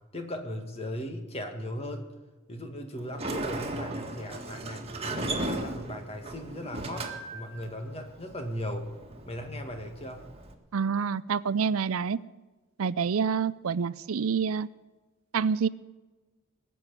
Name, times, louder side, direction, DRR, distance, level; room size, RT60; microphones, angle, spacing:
voice 1, 0.1-2.1 2.5-8.9 9.3-10.2, equal, 30° left, 5 dB, 2.0 m, -37 dB
Sliding door, 3.0-10.5, right 2 dB, 30° right, 1.8 m, -37 dB
voice 2, 10.7-12.2 12.8-14.7 15.3-15.7, right 6 dB, 85° right, 18 dB, 0.5 m, -27 dB
20.0 x 7.0 x 9.7 m, 1.2 s
head